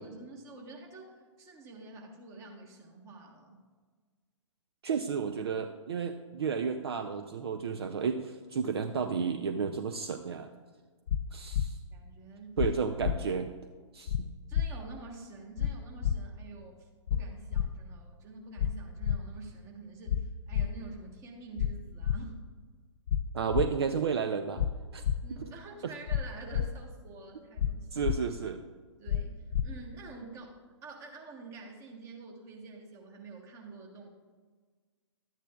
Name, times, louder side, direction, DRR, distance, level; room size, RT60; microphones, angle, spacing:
voice 1, 0.0-3.6 11.9-12.6 14.5-22.4 25.2-28.1 29.0-34.1, right 3 dB, 20° right, 1 dB, 1.3 m, -48 dB
voice 2, 4.8-10.5 11.3-11.8 12.6-13.5 13.9-14.3 23.3-24.6 24.9-25.0 27.9-28.6, right 6 dB, 55° right, 7 dB, 0.5 m, -32 dB
sound 1, 11.1-11.2 11.5-11.7 12.6-12.7 13.0-13.2 14.1-14.2 14.5-14.7 15.6-15.7 16.0-16.2 17.1-17.2 17.5-17.7 18.6-18.7 19.0-19.2 20.1-20.2 20.5-20.7 21.6-21.7 22.0-22.2 23.1-23.2 23.5-23.7 24.6-24.7 25.0-25.2 26.1-26.2 26.5-26.7 27.6-27.7 28.0-28.2 29.1-29.2 29.5-29.7, left 10 dB, 60° left, 0.4 m, -28 dB
12.0 x 8.9 x 2.4 m, 1.5 s
figure-of-eight pair, 120°, 16 cm